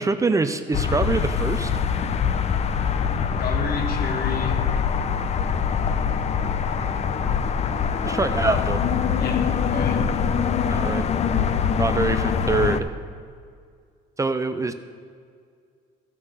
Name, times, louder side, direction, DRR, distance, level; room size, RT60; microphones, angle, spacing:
voice 1, 0.0-1.7 8.0-8.9 10.7-11.1 11.8-12.9 14.2-14.7, right 3 dB, 20° right, 9 dB, 0.6 m, -24 dB
sound 1, 0.7-12.8, left 7 dB, 40° left, 0.6 m, -23 dB
voice 2, 3.4-4.6 9.2-10.1, left 4 dB, 65° left, 4 dB, 1.6 m, -31 dB
13.0 x 5.8 x 8.0 m, 2.1 s
cardioid pair, 110°, 17 cm